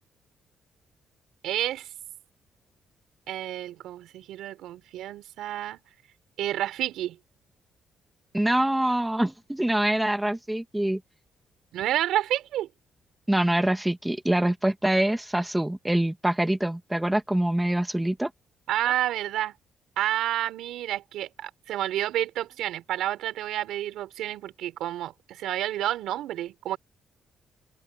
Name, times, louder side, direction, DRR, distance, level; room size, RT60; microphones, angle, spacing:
voice 1, 1.4-1.9 3.3-5.8 6.4-7.2 11.7-12.7 18.7-19.5 20.0-26.8, right 13 dB, 85° right, 4.7 m, -29 dB
voice 2, 8.3-11.0 13.3-18.3, right 1 dB, 10° right, 2.1 m, -25 dB
open air
cardioid pair, 90°, 0 cm